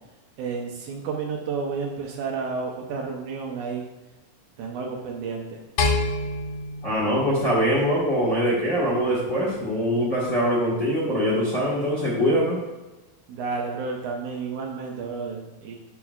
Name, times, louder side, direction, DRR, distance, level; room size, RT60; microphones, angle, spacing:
voice 1, 0.4-3.9 4.6-5.6 13.3-15.8, right 5 dB, 70° right, 1 dB, 2.2 m, -31 dB
sound 1, 5.8-8.2, left 3 dB, 60° left, 2.0 m, -27 dB
voice 2, 6.8-12.6, equal, 35° left, -6 dB, 1.3 m, -23 dB
11.5 x 5.7 x 2.4 m, 1.1 s
omnidirectional pair, 3.9 m